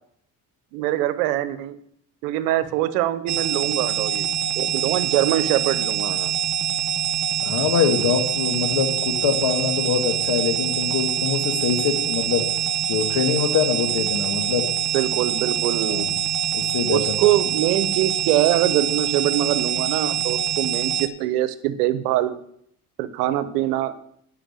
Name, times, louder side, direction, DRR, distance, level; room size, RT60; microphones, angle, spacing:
voice 1, 0.7-1.8 2.2-4.3 4.6-6.3 14.9-16.0 16.9-22.4 23.0-23.9, right 13 dB, 85° right, 14 dB, 0.9 m, -23 dB
sound 1, 3.3-21.1, right 9 dB, 35° right, 1.0 m, -25 dB
voice 2, 7.4-12.5 12.9-14.7 15.9-16.1 16.5-17.0, left 7 dB, 65° left, 6 dB, 1.9 m, -24 dB
10.0 x 5.6 x 7.4 m, 0.69 s
hypercardioid pair, 60°, 45 cm